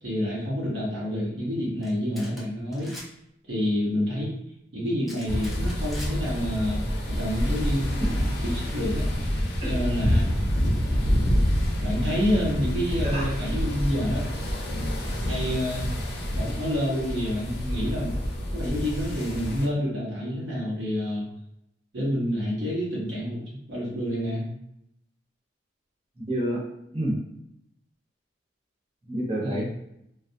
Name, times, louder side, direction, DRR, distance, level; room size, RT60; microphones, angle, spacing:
voice 1, 0.0-2.9 3.5-4.3 4.7-7.9 8.4-9.1 9.6-10.5 11.8-14.2 15.2-15.9 16.3-18.1 18.5-21.3 21.9-24.5 29.4-29.6, equal, 65° right, -6 dB, 0.8 m, -28 dB
sound 1, 1.8-2.4 2.7-3.1 5.1-6.1, left 1 dB, ahead, 0.5 m, -42 dB
sound 2, 5.3-19.7, equal, 60° left, 0.6 m, -27 dB
voice 2, 26.2-26.6 26.9-27.2 29.0-29.6, right 1 dB, 35° right, -6 dB, 0.9 m, -28 dB
2.3 x 2.0 x 2.6 m, 0.79 s
head